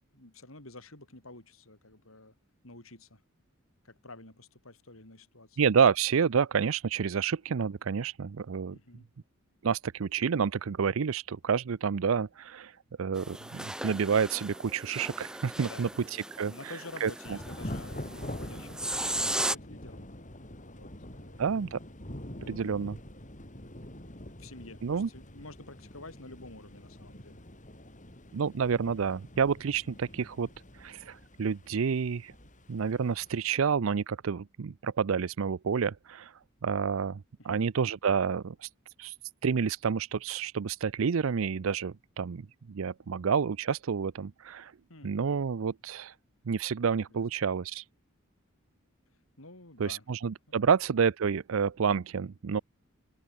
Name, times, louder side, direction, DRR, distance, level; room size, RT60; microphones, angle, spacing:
voice 1, 0.1-2.3 2.6-3.2 3.8-5.6 8.7-9.1 15.6-16.0 16.5-20.1 20.7-21.7 22.4-22.9 24.0-27.4 37.4-37.6 44.9-45.2 47.1-47.2 49.4-50.0 50.5-50.7, left 2 dB, 80° left, 6.8 m, -49 dB
voice 2, 5.6-8.8 9.6-16.7 17.0-17.4 21.4-21.8 22.5-23.0 24.8-25.1 28.3-30.5 30.7-32.3 32.7-38.7 39.0-39.1 39.4-42.4 42.7-44.7 45.0-46.1 46.5-47.8 49.8-52.6, right 6 dB, 70° right, 0.5 m, -29 dB
sound 1, 13.1-19.5, right 1 dB, 5° right, 0.5 m, -37 dB
Thunder / Rain, 17.3-33.5, left 1 dB, 40° left, 7.5 m, -45 dB
head